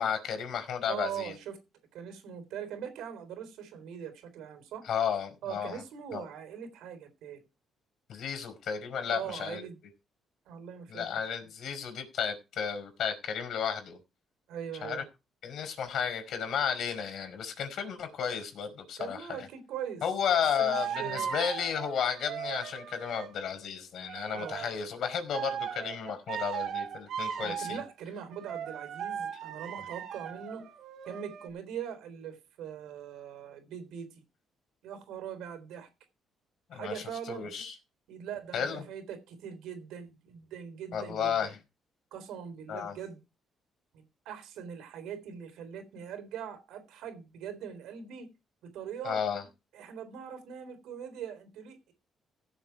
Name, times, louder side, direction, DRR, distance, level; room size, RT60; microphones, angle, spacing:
voice 1, 0.0-1.3 4.8-5.8 6.1-6.3 8.1-9.7 10.9-14.0 14.8-15.0 15.4-19.5 20.0-27.8 36.7-37.7 38.5-38.8 40.9-41.6 42.7-43.0 49.0-49.4, left 7 dB, 70° left, 5.0 m, -33 dB
voice 2, 0.8-1.6 1.9-4.8 5.4-7.4 9.1-9.8 10.5-11.1 14.5-15.1 19.0-20.0 20.6-21.3 24.3-24.7 27.4-30.7 31.1-34.2 34.8-35.9 36.7-37.5 38.1-41.5 42.1-43.2 43.9-48.3 48.7-49.2 49.7-51.9, right 8 dB, 90° right, 3.8 m, -41 dB
sound 1, 20.4-23.4 24.1-24.9 25.3-27.8 28.3-31.5, right 8 dB, 70° right, 2.4 m, -38 dB
17.0 x 7.2 x 4.6 m
cardioid pair, 90°, 0 cm